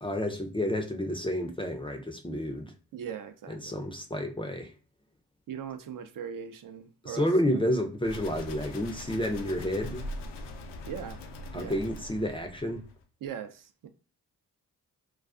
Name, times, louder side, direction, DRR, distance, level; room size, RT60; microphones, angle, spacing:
voice 1, 0.0-2.7 3.5-4.7 7.0-10.0 11.5-12.8, left 1 dB, 15° left, 0.4 m, -30 dB
voice 2, 2.9-3.8 5.5-7.7 10.9-11.2 11.5-11.8 13.2-13.9, right 8 dB, 50° right, 0.5 m, -40 dB
sound 1, 8.0-13.0, left 1 dB, 80° left, 0.5 m, -41 dB
2.3 x 2.2 x 2.4 m
hypercardioid pair, 40°, 42 cm